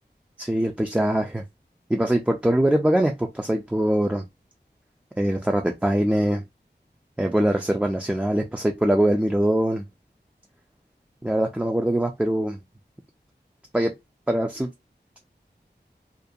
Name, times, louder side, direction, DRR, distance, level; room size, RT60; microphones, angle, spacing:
voice 1, 0.4-1.4 1.9-4.2 5.2-6.4 7.2-9.8 11.2-12.6 13.7-13.9 14.3-14.7, right 1 dB, 5° right, 0.3 m, -22 dB
2.4 x 2.2 x 2.6 m
wide cardioid pair, 50°, 18 cm